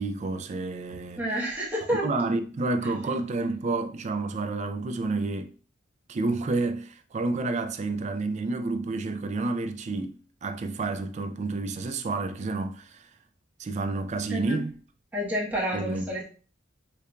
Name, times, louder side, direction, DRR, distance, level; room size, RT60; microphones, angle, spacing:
voice 1, 0.0-1.2 2.0-5.5 6.1-13.1 13.6-14.8 15.7-16.1, right 3 dB, 35° right, 0.3 m, -30 dB
voice 2, 1.2-2.1 14.3-14.6 15.1-16.3, equal, 10° right, 0.9 m, -29 dB
4.6 x 2.5 x 2.2 m
head